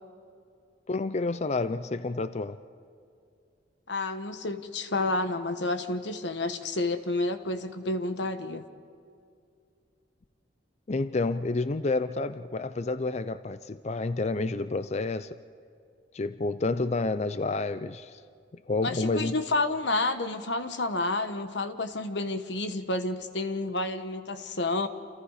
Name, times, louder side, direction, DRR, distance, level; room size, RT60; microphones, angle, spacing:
voice 1, 0.9-2.6 10.9-15.4 16.1-18.2 18.7-19.4, left 3 dB, 35° left, 0.5 m, -29 dB
voice 2, 3.9-8.6 18.8-24.9, left 2 dB, 70° left, 1.3 m, -30 dB
29.0 x 28.0 x 5.0 m
head